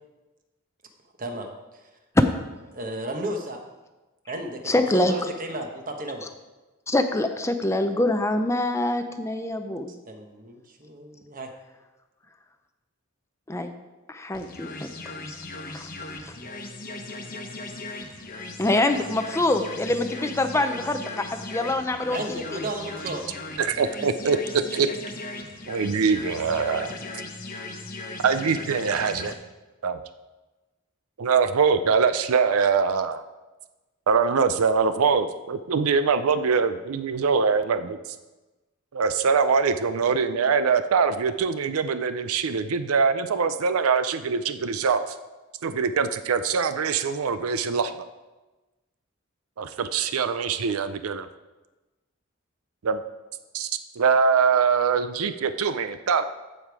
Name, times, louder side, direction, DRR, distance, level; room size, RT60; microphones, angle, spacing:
voice 1, 1.2-1.9 2.7-3.6 4.3-6.3 10.1-11.5 22.1-23.2, right 1 dB, 40° right, 4 dB, 1.2 m, -34 dB
voice 2, 4.7-5.2 6.9-9.9 13.5-13.7 14.1-14.9 15.7-15.9 16.2-16.3 18.6-22.2, left 1 dB, 15° left, 7 dB, 0.5 m, -24 dB
sound 1, 14.3-29.3, left 2 dB, 40° left, 1.0 m, -38 dB
voice 3, 23.6-24.9 25.7-26.9 28.2-29.3 29.8-30.0 31.2-33.2 34.1-38.0 38.9-45.0 45.6-47.9 49.6-51.3 52.8-53.0 53.5-53.7 54.0-56.2, right 5 dB, 85° right, 11 dB, 0.5 m, -23 dB
14.5 x 5.1 x 4.8 m, 1.1 s
head